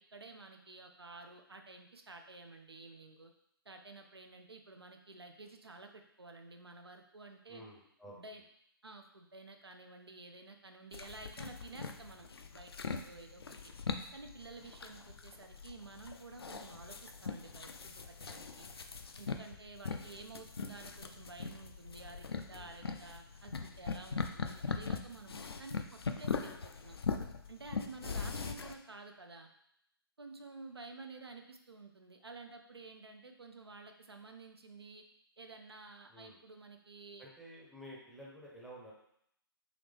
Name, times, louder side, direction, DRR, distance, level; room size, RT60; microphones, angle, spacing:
voice 1, 0.0-3.3 3.7-7.6 8.1-8.4 8.8-13.7 14.1-18.7 19.2-27.0 27.5-29.5 30.2-35.0 35.4-37.3, right 3 dB, 85° right, 5 dB, 0.5 m, -52 dB
voice 2, 7.5-8.2 22.5-22.7 36.1-36.4 37.2-38.9, equal, ahead, -5 dB, 0.6 m, -52 dB
sound 1, 10.9-28.8, left 5 dB, 75° left, 0.4 m, -41 dB
3.9 x 3.0 x 3.4 m, 0.73 s
figure-of-eight pair, 130°, 13 cm